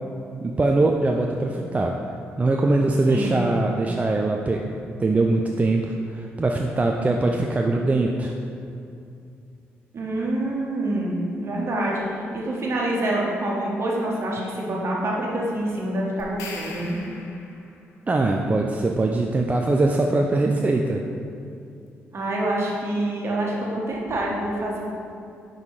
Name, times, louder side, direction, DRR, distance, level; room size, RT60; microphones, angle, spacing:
voice 1, 0.4-2.0 2.4-4.6 5.0-8.4 18.1-21.0, right 2 dB, 25° right, 1 dB, 0.4 m, -22 dB
voice 2, 3.1-3.5 9.9-17.0 22.1-24.8, right 1 dB, 55° right, -3 dB, 1.4 m, -26 dB
sound 1, 16.2-17.8, left 3 dB, 85° left, 0.7 m, -39 dB
5.6 x 3.9 x 4.8 m, 2.5 s
supercardioid pair, 50°, 5 cm